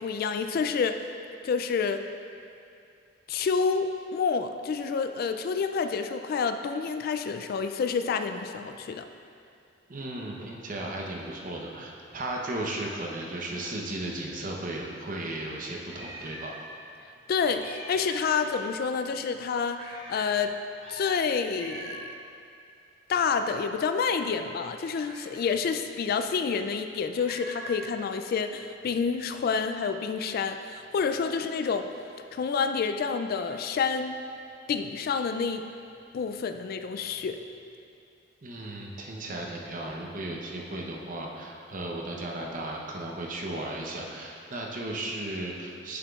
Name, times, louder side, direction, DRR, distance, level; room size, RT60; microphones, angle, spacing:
voice 1, 0.0-1.0 1.4-2.1 3.3-9.1 17.3-20.6 20.9-22.1 23.1-31.9 32.3-34.2 34.7-35.7 36.1-37.4, left 5 dB, 55° left, 8 dB, 0.3 m, -28 dB
voice 2, 9.9-16.5 38.4-46.0, right 1 dB, 45° right, -1 dB, 0.8 m, -35 dB
Meow, 15.1-16.7 16.9-17.0 17.4-18.3 19.7-20.4 20.8-21.2 21.5-22.2 25.0-25.6 27.2-27.9, right 1 dB, 70° right, 1.7 m, -43 dB
9.0 x 7.0 x 2.4 m, 2.5 s
head